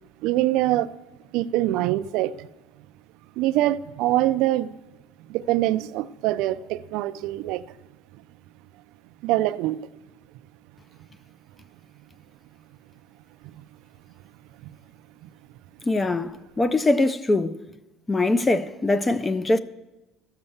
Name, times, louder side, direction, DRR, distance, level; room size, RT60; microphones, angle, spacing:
voice 1, 0.2-0.9 1.3-2.5 3.4-4.8 5.3-7.6 9.2-9.8, right 15 dB, 60° right, 0.4 m, -24 dB
voice 2, 15.9-17.6 18.1-19.6, left 2 dB, 10° left, 0.3 m, -22 dB
14.0 x 6.6 x 7.1 m
cardioid pair, 175°, 0 cm